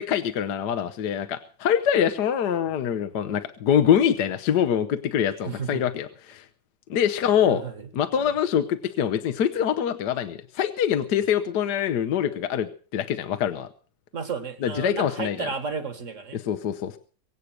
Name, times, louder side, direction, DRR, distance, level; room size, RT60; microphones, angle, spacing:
voice 1, 0.0-6.5 6.9-7.6 7.9-13.7 14.6-15.5 16.3-17.0, left 9 dB, 75° left, 9 dB, 1.5 m, -24 dB
voice 2, 5.5-5.9 7.4-7.9 8.1-8.3 14.1-16.4, right 5 dB, 45° right, 9 dB, 2.1 m, -33 dB
23.5 x 8.4 x 6.4 m, 0.41 s
omnidirectional pair, 1.8 m